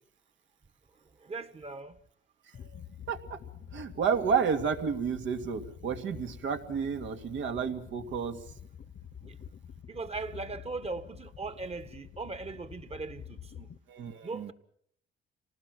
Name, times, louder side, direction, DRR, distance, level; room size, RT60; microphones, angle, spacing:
voice 1, 1.2-2.0 9.2-9.3 9.9-13.7 14.2-14.5, right 3 dB, 30° right, 1.7 m, -39 dB
sound 1, 2.5-13.8, left 8 dB, 45° left, 1.1 m, -48 dB
voice 2, 3.1-3.4 3.7-8.4 13.9-14.5, right 6 dB, 70° right, 2.4 m, -31 dB
27.5 x 19.0 x 6.1 m
cardioid pair, 90°, 20 cm